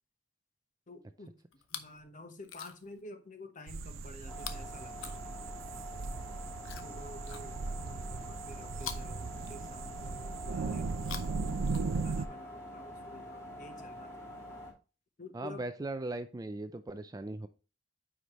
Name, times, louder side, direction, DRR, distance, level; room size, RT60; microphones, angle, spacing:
voice 1, 0.9-1.4 1.7-5.3 6.8-11.2 11.4-14.3 15.2-15.6, left 2 dB, 40° left, 7 dB, 1.1 m, -51 dB
Chewing mastication, 1.5-2.0 2.4-3.0 4.3-5.7 6.6-7.9 8.7-10.0 10.9-12.3 13.2-13.3, left 8 dB, 85° left, 0.8 m, -47 dB
sound 1, 3.7-12.3, right 4 dB, 85° right, 0.5 m, -38 dB
sound 2, 4.3-14.7, equal, 15° left, 2.4 m, -46 dB
voice 2, 15.3-17.5, right 2 dB, 20° right, 10 dB, 0.4 m, -38 dB
9.3 x 5.0 x 3.1 m, 0.33 s
head